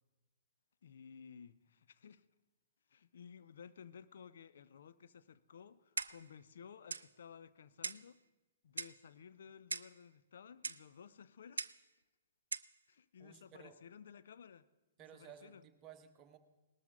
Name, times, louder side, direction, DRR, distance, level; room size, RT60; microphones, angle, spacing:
voice 1, 0.8-2.2 2.9-8.2 8.6-11.7 12.9-14.7 15.1-15.7, left 7 dB, 65° left, 0.5 m, -56 dB
Clock, 6.0-6.3 6.9-7.1 7.8-8.1 8.8-9.0 9.7-10.0 10.6-10.8 11.6-11.8 12.5-12.7, right 4 dB, 80° right, 0.4 m, -41 dB
voice 2, 13.2-13.7 15.0-16.4, right 9 dB, 30° right, 1.2 m, -56 dB
19.0 x 13.0 x 3.7 m
figure-of-eight pair, 115°, 0 cm